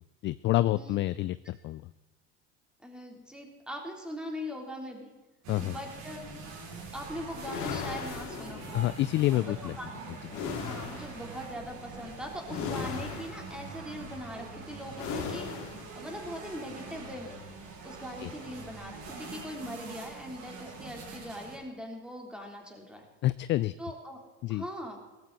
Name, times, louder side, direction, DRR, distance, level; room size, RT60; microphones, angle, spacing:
voice 1, 0.2-1.8 5.5-5.8 8.7-9.7 18.2-18.3 23.2-23.7 24.4-24.6, left 16 dB, 35° left, 16 dB, 0.4 m, -28 dB
voice 2, 2.8-5.1 5.6-6.2 6.9-8.8 9.3-9.4 9.8-9.9 10.6-17.4 17.8-23.0 23.8-24.2 24.5-25.0, equal, ahead, 1 dB, 3.6 m, -41 dB
sound 1, 5.4-21.6, right 3 dB, 50° right, 5.8 m, -44 dB
sound 2, 7.4-9.0 10.3-11.2 12.5-13.6 15.0-15.9, left 6 dB, 50° left, 3.0 m, -37 dB
17.5 x 14.5 x 4.2 m, 1.2 s
supercardioid pair, 105°, 35 cm